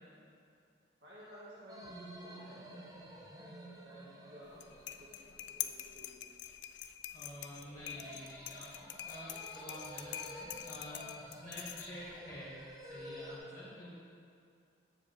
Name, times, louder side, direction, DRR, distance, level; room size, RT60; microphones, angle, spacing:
voice 1, 1.0-3.1 3.3-6.2, equal, 70° right, -8 dB, 1.9 m, -55 dB
sound 1, 1.7-6.1 7.4-13.4, equal, 20° right, 0.8 m, -51 dB
sound 2, 4.5-12.2, left 11 dB, 65° left, 0.3 m, -45 dB
voice 2, 7.1-8.7 9.0-12.5 12.8-13.9, equal, 30° left, -11 dB, 1.6 m, -49 dB
7.4 x 4.8 x 6.6 m, 2.4 s
head